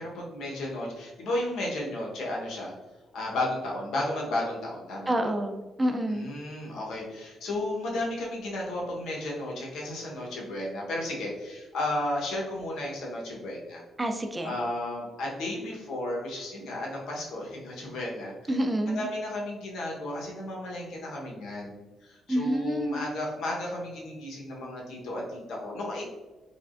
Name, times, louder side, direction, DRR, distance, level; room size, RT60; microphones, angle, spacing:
voice 1, 0.0-2.7 3.1-5.1 6.1-13.8 14.4-18.3 18.9-26.0, left 1 dB, 75° left, -2 dB, 1.0 m, -33 dB
voice 2, 5.1-6.3 14.0-14.5 18.5-19.1 22.3-23.0, right 1 dB, 20° right, 5 dB, 0.4 m, -28 dB
3.4 x 3.1 x 2.5 m, 1.2 s
cardioid pair, 90°, 0 cm